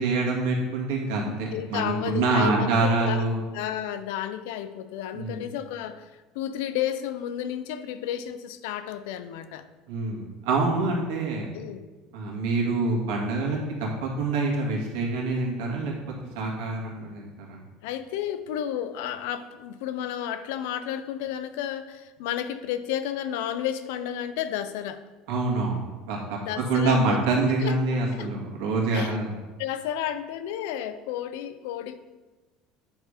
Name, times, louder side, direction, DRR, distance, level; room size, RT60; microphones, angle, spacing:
voice 1, 0.0-3.4 5.1-5.4 9.9-11.5 12.1-15.9 16.3-17.6 25.3-25.8 26.0-26.4 26.7-29.3, right 3 dB, 80° right, -2 dB, 2.0 m, -26 dB
voice 2, 1.5-3.2 3.5-9.7 11.5-11.9 17.8-25.0 26.4-27.2 27.6-28.3 28.9-29.2 29.6-32.0, left 10 dB, 80° left, 11 dB, 0.5 m, -32 dB
9.0 x 3.7 x 5.0 m, 1.2 s
cardioid pair, 170°, 0 cm